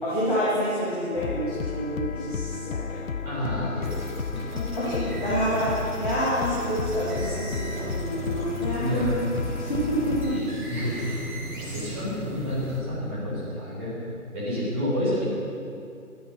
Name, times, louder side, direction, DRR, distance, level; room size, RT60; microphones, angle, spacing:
voice 1, 0.0-3.1 4.8-9.1 9.6-10.3 10.7-11.2 11.5-11.8, equal, 35° left, -10 dB, 3.1 m, -28 dB
sound 1, 1.2-10.4, left 5 dB, 60° left, 0.5 m, -33 dB
voice 2, 3.2-5.3 8.8-9.1 10.3-11.2 11.5-14.0 14.3-15.2, left 1 dB, 10° right, -11 dB, 3.5 m, -30 dB
sound 2, 3.8-11.9, right 1 dB, 30° right, 2.1 m, -43 dB
sound 3, 5.1-12.8, right 4 dB, 75° right, 1.9 m, -37 dB
13.0 x 9.1 x 5.9 m, 2.5 s
figure-of-eight pair, 160°, 44 cm